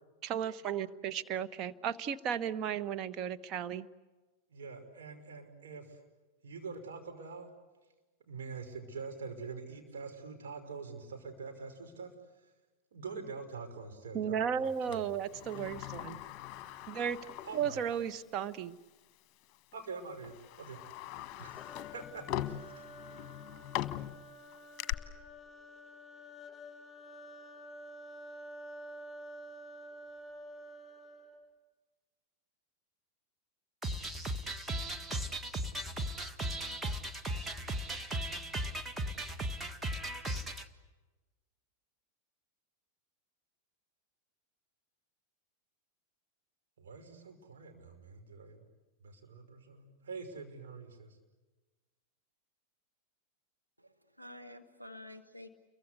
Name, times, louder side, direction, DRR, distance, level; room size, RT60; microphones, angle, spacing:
voice 1, 0.2-3.9 14.1-16.2 16.9-17.2 17.5-18.8, right 8 dB, 35° right, 10 dB, 1.2 m, -35 dB
voice 2, 4.5-6.0 6.4-7.5 8.2-12.1 12.9-15.1 17.4-17.8 19.7-20.8 21.4-22.8 46.8-48.6 49.0-51.2, right 4 dB, 60° right, 3 dB, 5.5 m, -45 dB
Sliding door, 14.9-18.2 18.5-18.6 19.5-19.7 20.2-24.9, left 13 dB, 35° left, 1.3 m, -41 dB
sound 1, 21.6-31.5, equal, 20° left, 5.5 m, -50 dB
sound 2, 33.8-40.6, right 1 dB, 10° right, 1.6 m, -37 dB
voice 3, 53.8-55.5, left 1 dB, 90° right, 3 dB, 1.3 m, -50 dB
30.0 x 23.5 x 8.3 m, 1.2 s
figure-of-eight pair, 90°, 0 cm